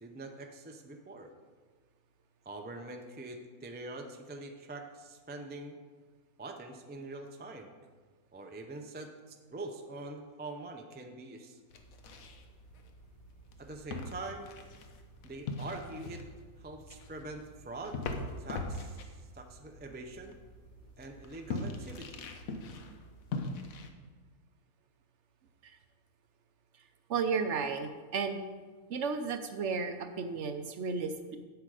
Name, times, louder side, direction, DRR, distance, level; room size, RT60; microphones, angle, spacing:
voice 1, 0.0-1.3 2.4-5.8 6.4-7.7 8.3-11.6 13.6-14.5 15.2-16.2 16.6-18.0 18.4-20.4 21.0-22.2, right 2 dB, 15° right, 4 dB, 0.3 m, -44 dB
sound 1, 11.7-23.9, left 3 dB, 80° left, 1.2 m, -42 dB
voice 2, 27.1-28.4 28.9-31.4, right 5 dB, 60° right, 8 dB, 0.9 m, -33 dB
8.1 x 7.7 x 4.9 m, 1.4 s
omnidirectional pair, 1.5 m